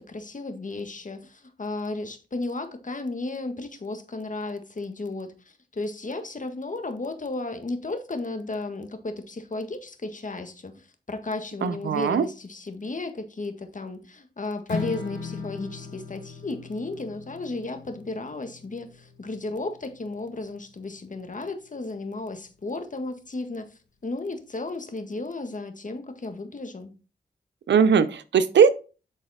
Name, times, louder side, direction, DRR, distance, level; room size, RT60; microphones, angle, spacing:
voice 1, 0.0-23.7 24.0-26.9, left 2 dB, 45° left, 1.7 m, -34 dB
voice 2, 11.6-12.3 27.7-28.7, right 7 dB, 85° right, 0.7 m, -19 dB
Strum, 14.7-21.0, left 5 dB, 70° left, 1.7 m, -39 dB
10.0 x 4.0 x 4.2 m
cardioid pair, 45°, 18 cm